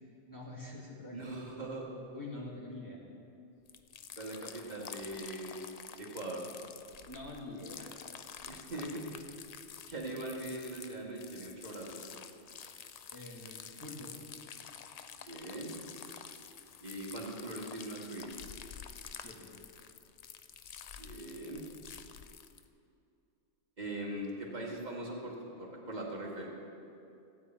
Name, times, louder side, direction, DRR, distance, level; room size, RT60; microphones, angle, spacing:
voice 1, 0.3-1.4 2.1-3.0 7.1-8.0 13.1-14.1 19.2-19.5, left 2 dB, 15° left, -4 dB, 1.9 m, -45 dB
voice 2, 1.1-1.9 4.2-5.6 6.0-6.4 8.5-9.2 9.9-12.0 15.2-15.7 16.8-18.3 21.0-21.6 23.8-26.5, right 1 dB, 35° right, -2 dB, 1.9 m, -41 dB
sound 1, 3.7-22.7, left 7 dB, 70° left, 0.3 m, -49 dB
16.0 x 8.9 x 4.4 m, 2.7 s
omnidirectional pair, 1.2 m